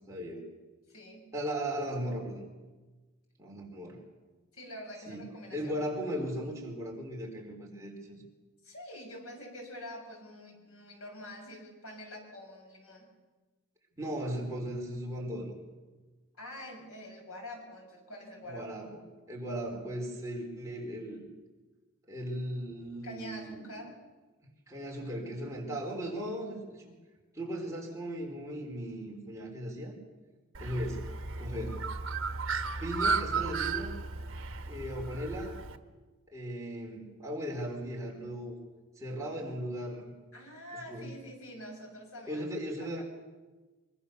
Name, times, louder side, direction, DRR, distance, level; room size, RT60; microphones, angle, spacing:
voice 1, 0.1-0.4 1.3-2.5 3.4-4.0 5.1-8.2 14.0-15.5 18.5-21.3 22.1-23.8 24.7-26.8 27.3-29.9 30.6-31.1 31.4-31.8 32.8-34.0 34.6-35.5 36.3-38.6 39.0-40.1 40.9-41.1 42.3-43.0, equal, 15° right, -1 dB, 4.3 m, -37 dB
voice 2, 0.9-1.3 4.5-5.9 8.6-13.1 16.3-18.7 23.0-24.0 40.3-42.4 42.8-43.0, left 1 dB, 85° left, 1 dB, 7.0 m, -46 dB
Bird, 30.5-35.8, right 4 dB, 65° right, 1.4 m, -34 dB
24.5 x 23.5 x 7.0 m, 1.2 s
head